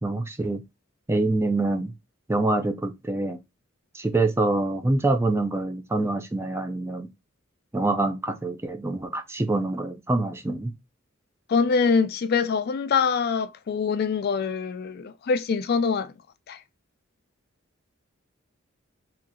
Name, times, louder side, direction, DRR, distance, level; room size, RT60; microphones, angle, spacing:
voice 1, 0.0-0.6 1.1-1.9 2.3-3.4 3.9-7.1 7.7-10.7, right 2 dB, 10° right, 0.4 m, -25 dB
voice 2, 11.5-16.1 16.5-16.6, left 5 dB, 50° left, 0.4 m, -24 dB
3.1 x 2.9 x 3.7 m
head